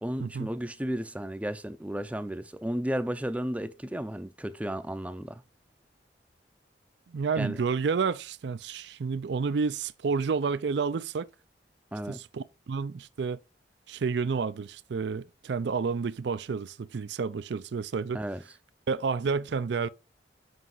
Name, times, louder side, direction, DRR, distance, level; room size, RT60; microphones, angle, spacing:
voice 1, 0.0-5.4 7.4-7.6 11.9-12.2 18.1-18.4, equal, 5° right, 0.5 m, -33 dB
voice 2, 7.1-11.3 12.1-13.4 13.9-18.2 18.9-19.9, right 5 dB, 65° right, 0.4 m, -30 dB
7.9 x 5.0 x 3.9 m
head